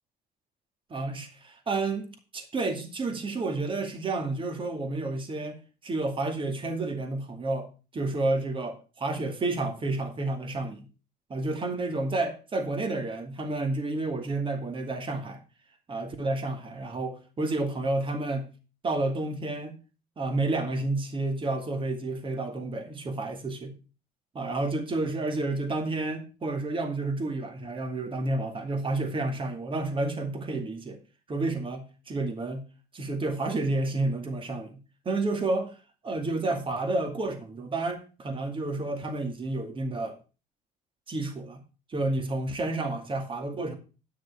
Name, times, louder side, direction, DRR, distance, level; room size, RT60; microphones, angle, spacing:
voice 1, 0.9-2.1 2.3-5.6 5.8-7.7 7.9-10.8 11.3-15.4 15.9-18.5 18.8-19.7 20.2-23.7 24.3-31.0 31.3-32.6 32.9-34.8 35.1-35.7 36.0-40.2 41.1-41.6 41.9-43.8, right 2 dB, 30° right, 2.3 m, -30 dB
10.5 x 6.3 x 5.8 m
cardioid pair, 110°, 17 cm